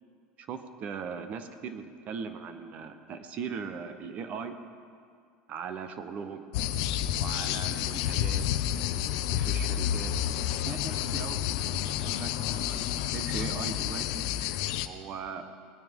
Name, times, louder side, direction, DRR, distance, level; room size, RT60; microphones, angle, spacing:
voice 1, 0.4-4.5 5.5-6.5 7.1-8.4 9.3-10.1 10.6-11.4 11.6-14.1 14.8-15.4, right 6 dB, 40° right, 9 dB, 0.8 m, -39 dB
sound 1, 6.5-14.9, left 11 dB, 70° left, 0.6 m, -30 dB
19.0 x 9.4 x 3.6 m, 2.2 s
cardioid pair, 150°, 4 cm